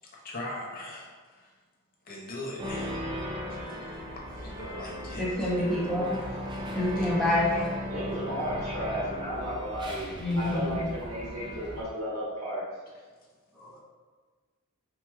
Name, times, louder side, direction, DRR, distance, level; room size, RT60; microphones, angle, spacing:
voice 1, 0.1-1.5 2.0-3.1 3.5-3.9 4.2-5.8 7.0-7.2, left 1 dB, 40° left, -3 dB, 0.7 m, -41 dB
sound 1, 2.6-11.8, equal, 20° right, 0.5 m, -37 dB
voice 2, 5.2-6.2 6.7-7.7 10.2-10.8 13.5-13.8, left 1 dB, ahead, -8 dB, 0.8 m, -27 dB
voice 3, 7.9-12.6, equal, 80° right, -9 dB, 1.4 m, -34 dB
4.2 x 3.0 x 2.3 m, 1.4 s
head